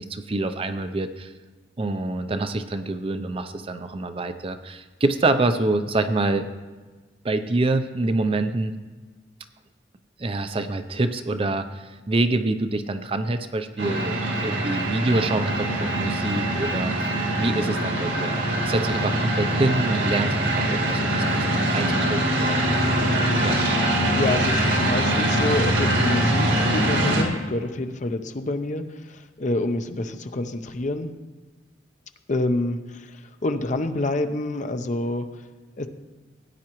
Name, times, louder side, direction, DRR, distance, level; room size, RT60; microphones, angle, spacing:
voice 1, 0.0-1.3 1.8-6.5 7.2-8.8 10.2-14.2 14.4-17.1 17.4-21.0 21.3-22.6 23.4-23.6, right 2 dB, 30° right, 9 dB, 0.5 m, -26 dB
sound 1, 13.8-27.2, right 1 dB, 85° right, 2.0 m, -23 dB
voice 2, 24.2-31.1 32.3-35.3 35.8-35.9, left 2 dB, 45° left, 8 dB, 0.7 m, -27 dB
16.5 x 9.5 x 3.0 m, 1.3 s
head